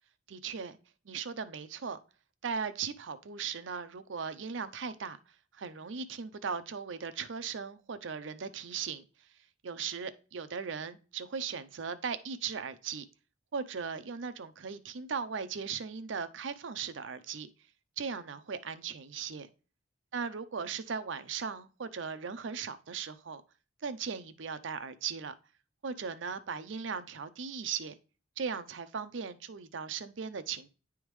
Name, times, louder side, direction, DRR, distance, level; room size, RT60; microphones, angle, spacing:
voice 1, 0.3-0.8 1.1-2.0 2.4-5.2 5.5-9.0 9.6-13.0 13.5-17.5 18.0-19.5 20.1-23.4 23.8-25.3 25.8-27.9 28.4-30.7, right 6 dB, 80° right, 0.6 m, -38 dB
9.8 x 3.5 x 3.1 m
head